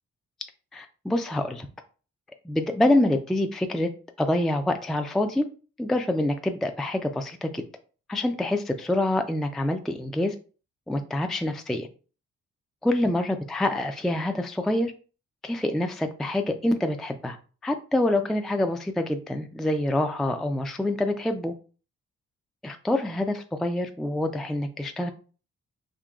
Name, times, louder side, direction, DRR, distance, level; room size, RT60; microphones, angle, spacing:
voice 1, 0.7-1.7 2.4-3.9 4.2-5.5 5.8-7.6 8.1-10.3 10.9-11.9 12.8-14.9 15.4-17.4 17.6-21.5 22.6-25.1, left 1 dB, ahead, 6 dB, 0.3 m, -26 dB
3.8 x 2.7 x 2.3 m, 0.37 s
supercardioid pair, 50°, 31 cm